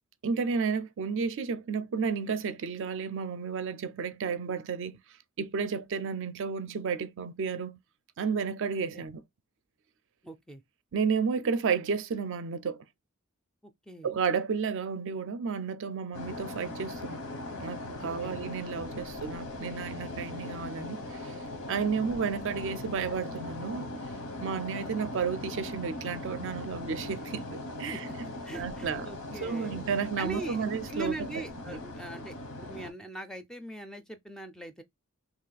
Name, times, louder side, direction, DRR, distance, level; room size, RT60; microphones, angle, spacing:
voice 1, 0.2-5.0 5.4-7.8 8.2-9.2 10.9-12.9 14.0-17.2 17.6-21.4 21.7-23.9 24.4-28.1 28.5-31.8, right 5 dB, 60° right, 0.4 m, -32 dB
voice 2, 10.2-10.6 13.9-14.1 18.2-18.3 27.9-29.8 30.2-34.8, right 2 dB, 5° left, 0.4 m, -41 dB
sound 1, 16.1-32.9, left 2 dB, 85° left, 0.9 m, -40 dB
2.9 x 2.4 x 4.0 m
head